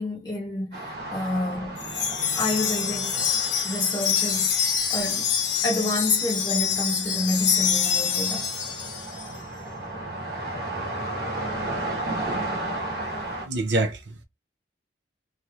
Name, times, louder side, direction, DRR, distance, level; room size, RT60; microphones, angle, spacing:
voice 1, 0.0-1.8 2.3-3.2 3.6-4.5 4.9-5.3 5.6-8.5, left 2 dB, 25° left, 0.8 m, -28 dB
sound 1, 0.7-13.5, right 1 dB, 60° right, 1.2 m, -34 dB
Wind chime, 1.8-9.3, left 7 dB, 80° left, 1.0 m, -26 dB
voice 2, 13.4-14.2, right 2 dB, 80° right, 0.6 m, -26 dB
3.0 x 2.6 x 2.4 m
head